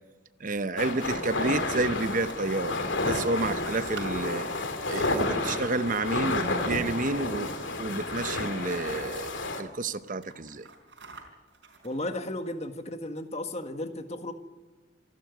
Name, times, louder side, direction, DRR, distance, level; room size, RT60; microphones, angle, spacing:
voice 1, 0.4-2.8 3.0-4.5 4.9-7.5 7.8-10.7, right 2 dB, 45° right, 13 dB, 0.8 m, -30 dB
sound 1, 0.6-6.2 7.3-7.7 8.0-8.1 8.4-9.4 9.9-12.5, right 4 dB, 75° right, 4.8 m, -51 dB
sound 2, 0.8-9.6, left 2 dB, 85° left, 2.5 m, -31 dB
voice 2, 11.8-14.3, left 1 dB, 35° left, 7 dB, 1.7 m, -34 dB
27.5 x 12.0 x 9.4 m, 1.3 s
head